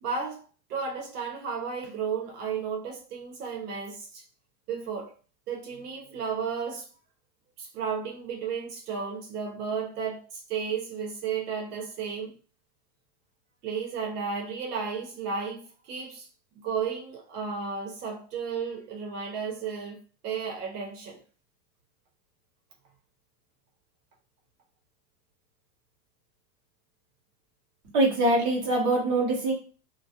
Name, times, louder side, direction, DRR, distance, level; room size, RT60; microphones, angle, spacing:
voice 1, 0.0-4.2 4.7-5.1 5.5-6.9 7.6-12.4 13.6-16.3 16.6-20.0 20.2-21.2, right 6 dB, 65° right, 0.8 m, -33 dB
voice 2, 27.8-29.5, right 2 dB, 25° right, 0.7 m, -23 dB
2.2 x 2.2 x 2.7 m
supercardioid pair, 160°, 50 cm